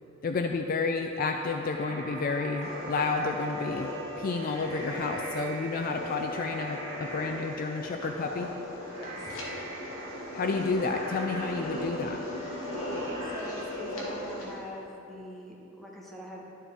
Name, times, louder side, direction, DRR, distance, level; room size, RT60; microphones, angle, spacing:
voice 1, 0.2-3.9 4.2-8.5 10.3-12.2, left 4 dB, 45° left, 5 dB, 0.4 m, -30 dB
sound 1, 1.2-14.6, right 1 dB, 30° right, 1.9 m, -43 dB
sound 2, 2.6-14.6, left 1 dB, 85° left, 1.6 m, -38 dB
voice 2, 8.9-9.5 13.2-16.4, equal, ahead, -4 dB, 1.3 m, -43 dB
11.5 x 7.3 x 3.5 m, 2.9 s
head